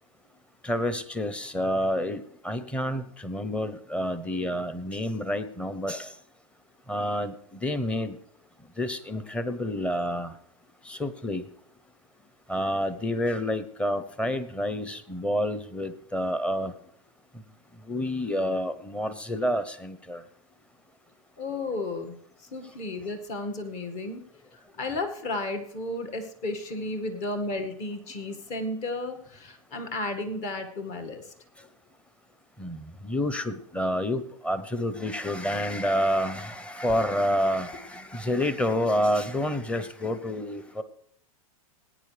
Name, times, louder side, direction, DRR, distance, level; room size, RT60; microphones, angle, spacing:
voice 1, 0.6-6.1 6.9-8.2 8.8-10.3 10.9-11.4 12.5-16.7 17.9-20.2 32.6-40.8, left 1 dB, 5° left, 0.8 m, -29 dB
voice 2, 21.4-24.2 24.5-31.7, left 2 dB, 40° left, 2.0 m, -33 dB
19.5 x 9.2 x 3.4 m
hypercardioid pair, 125°, 18 cm